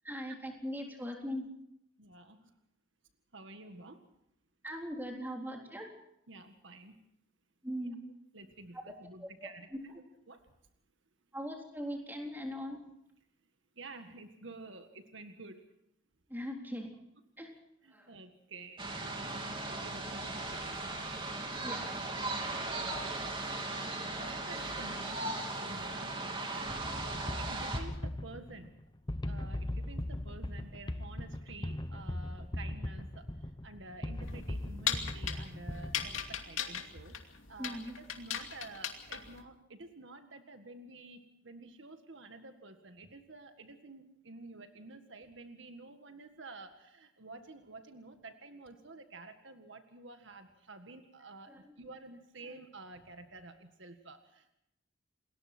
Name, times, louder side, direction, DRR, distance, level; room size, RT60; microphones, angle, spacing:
voice 1, 0.0-1.5 4.6-5.9 7.6-8.0 9.2-10.0 11.3-12.8 16.3-16.9 17.4-17.5 17.9-18.1 21.6-21.9 37.6-38.0 51.5-52.0 52.4-52.6, equal, 10° right, 1 dB, 3.8 m, -40 dB
voice 2, 2.0-2.5 3.3-4.0 6.3-6.9 8.3-9.7 10.3-10.4 13.8-15.6 17.8-21.1 22.5-26.8 27.1-28.7 29.3-37.8 38.2-54.5, right 2 dB, 70° right, 7 dB, 1.8 m, -50 dB
sound 1, 18.8-27.8, right 2 dB, 25° right, 3.0 m, -38 dB
sound 2, 26.8-36.4, left 1 dB, 20° left, 0.9 m, -39 dB
sound 3, 34.2-39.4, left 9 dB, 85° left, 2.6 m, -38 dB
28.5 x 20.5 x 4.5 m, 0.78 s
head